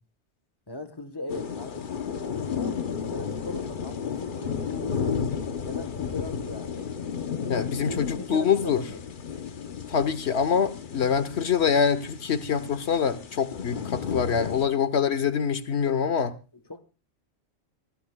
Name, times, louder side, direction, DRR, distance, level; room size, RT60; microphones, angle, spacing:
voice 1, 0.7-5.2 5.6-6.8 7.6-9.0 16.7-16.8, left 2 dB, 20° left, 9 dB, 1.1 m, -39 dB
sound 1, 1.3-14.7, left 6 dB, 50° left, 0.9 m, -33 dB
voice 2, 7.5-8.8 9.9-16.3, left 7 dB, 70° left, 13 dB, 1.2 m, -25 dB
26.5 x 14.5 x 2.3 m, 0.31 s
omnidirectional pair, 1.2 m